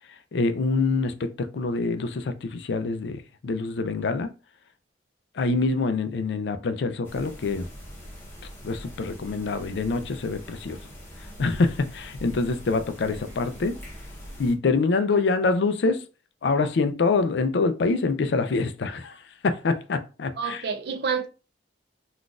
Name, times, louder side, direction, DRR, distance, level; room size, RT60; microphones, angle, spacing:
voice 1, 0.3-4.3 5.4-7.7 8.6-10.8 11.4-13.8 14.4-16.0 16.4-20.6, left 3 dB, 70° left, 0.4 m, -25 dB
sound 1, 7.0-14.5, equal, 15° left, 0.9 m, -42 dB
voice 2, 15.1-15.5 20.4-21.3, right 6 dB, 65° right, 0.5 m, -30 dB
3.8 x 2.5 x 2.4 m
head